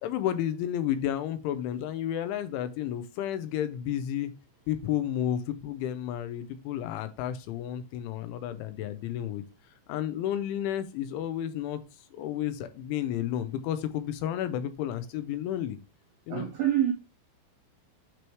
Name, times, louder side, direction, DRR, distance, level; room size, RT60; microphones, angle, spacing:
voice 1, 0.0-4.3 4.7-9.4 9.9-11.8 12.1-15.8 16.3-16.5, left 11 dB, 85° left, 3.1 m, -31 dB
voice 2, 16.3-16.9, right 11 dB, 80° right, 2.3 m, -26 dB
9.3 x 3.1 x 4.7 m
omnidirectional pair, 5.6 m